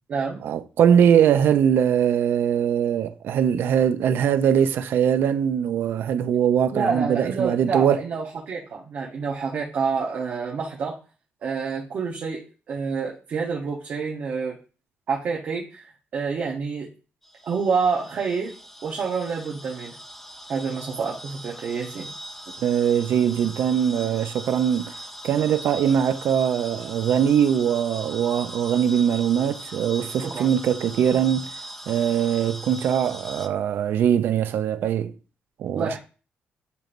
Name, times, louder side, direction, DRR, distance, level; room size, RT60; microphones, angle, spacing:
voice 1, 0.4-8.0 22.6-25.0 25.2-31.5 31.9-35.1 35.6-36.0, right 9 dB, 65° right, 0.4 m, -21 dB
voice 2, 6.7-11.0 11.4-14.6 15.1-15.8 16.1-16.9 17.4-18.5 18.8-19.9 20.5-22.1 30.2-30.5 35.7-36.0, right 5 dB, 50° right, 0.8 m, -28 dB
sound 1, 17.2-33.5, equal, 5° left, 0.3 m, -40 dB
6.7 x 3.0 x 2.5 m
cardioid pair, 160°, 4 cm